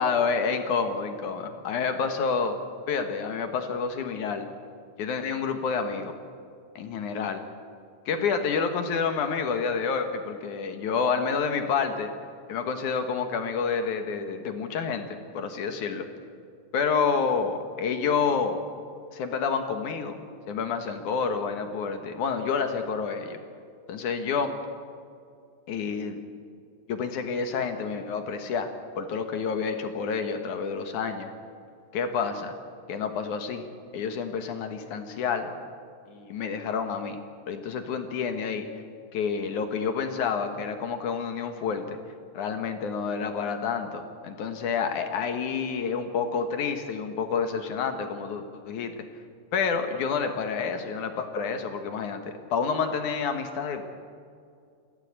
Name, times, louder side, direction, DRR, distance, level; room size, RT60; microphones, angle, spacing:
voice 1, 0.0-2.6 2.9-4.5 5.0-6.1 6.8-7.4 8.1-12.1 12.5-16.1 16.7-18.6 19.1-23.4 23.9-24.5 25.7-26.2 26.9-28.7 29.0-31.3 31.9-32.5 32.9-33.7 33.9-35.5 36.1-37.2 37.5-38.7 39.1-42.0 42.3-48.9 49.5-52.2 52.5-53.8, left 5 dB, 65° left, 6 dB, 2.0 m, -29 dB
24.5 x 16.0 x 8.8 m, 2.3 s
omnidirectional pair, 5.3 m